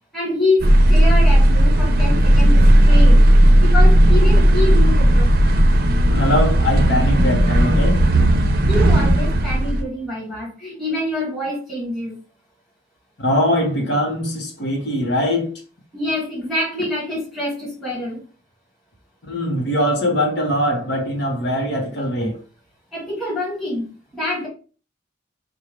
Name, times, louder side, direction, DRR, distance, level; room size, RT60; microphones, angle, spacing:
voice 1, 0.1-3.2 3.6-5.3 8.7-12.2 15.9-18.2 22.9-23.9 24.1-24.5, left 1 dB, ahead, 1.8 m, -25 dB
sound 1, 0.6-9.8, right 1 dB, 50° right, 0.6 m, -14 dB
voice 2, 6.1-8.0 13.2-15.5 19.3-22.4, equal, 60° left, 1.0 m, -21 dB
5.3 x 2.4 x 3.2 m
head